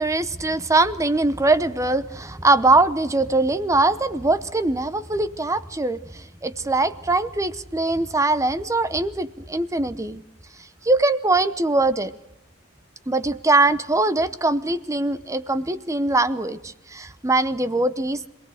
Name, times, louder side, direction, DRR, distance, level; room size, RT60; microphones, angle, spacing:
voice 1, 0.0-10.2 10.8-12.1 13.1-18.3, right 2 dB, 15° right, 13 dB, 0.8 m, -22 dB
26.5 x 18.0 x 6.4 m, 0.87 s
head